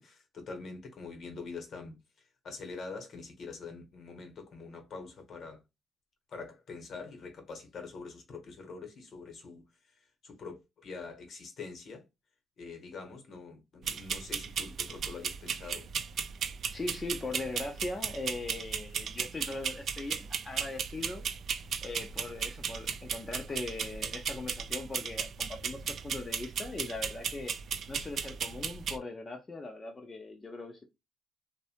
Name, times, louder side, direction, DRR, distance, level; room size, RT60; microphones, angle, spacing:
voice 1, 0.0-1.9 2.4-5.6 6.3-9.6 10.2-12.0 12.6-15.9, left 4 dB, 60° left, 0.9 m, -44 dB
sound 1, 13.8-29.0, right 7 dB, 60° right, 0.3 m, -36 dB
voice 2, 16.7-21.3 21.8-27.5 27.9-30.8, left 2 dB, 30° left, 0.5 m, -40 dB
2.6 x 2.1 x 2.7 m
cardioid pair, 90°, 0 cm